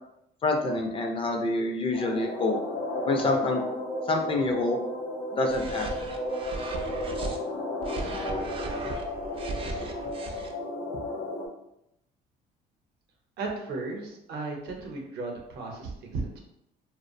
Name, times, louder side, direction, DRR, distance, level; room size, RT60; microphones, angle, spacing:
voice 1, 0.4-2.6 3.0-3.6 4.1-4.8 5.3-6.1, left 2 dB, 30° left, 3 dB, 0.4 m, -27 dB
sound 1, 1.9-11.5, left 1 dB, 65° left, 0.8 m, -33 dB
sound 2, 5.5-7.4 7.8-10.5, right 3 dB, 35° right, 0.4 m, -37 dB
voice 2, 13.4-16.4, right 3 dB, 75° right, 1 dB, 0.7 m, -35 dB
2.4 x 2.1 x 2.5 m, 0.79 s
cardioid pair, 110°, 17 cm